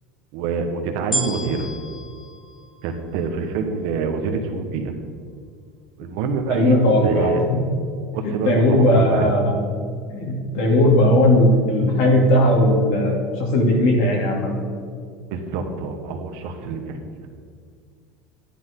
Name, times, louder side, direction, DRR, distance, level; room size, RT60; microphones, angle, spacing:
voice 1, 0.3-1.7 2.8-4.9 6.0-6.8 7.0-7.4 8.1-9.3 15.3-17.1, right 5 dB, 65° right, 5 dB, 1.3 m, -26 dB
sound 1, 1.1-3.5 4.1-4.2, right 1 dB, 10° left, 1.4 m, -31 dB
voice 2, 6.5-7.6 8.2-9.5 10.1-14.5, left 1 dB, 65° left, -2 dB, 2.9 m, -18 dB
12.0 x 10.5 x 3.8 m, 2.2 s
cardioid pair, 165°, 0 cm